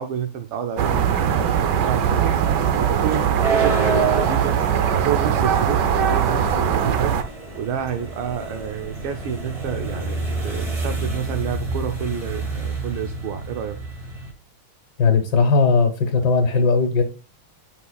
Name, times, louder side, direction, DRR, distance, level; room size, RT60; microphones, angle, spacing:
voice 1, 0.0-13.8, right 8 dB, 80° right, 5 dB, 1.6 m, -30 dB
sound 1, 0.8-7.2, right 8 dB, 65° right, 1.2 m, -20 dB
sound 2, 2.8-14.3, right 3 dB, 20° right, 1.3 m, -29 dB
voice 2, 15.0-17.0, left 4 dB, 55° left, 5 dB, 1.6 m, -18 dB
9.6 x 5.5 x 2.3 m, 0.34 s
omnidirectional pair, 2.3 m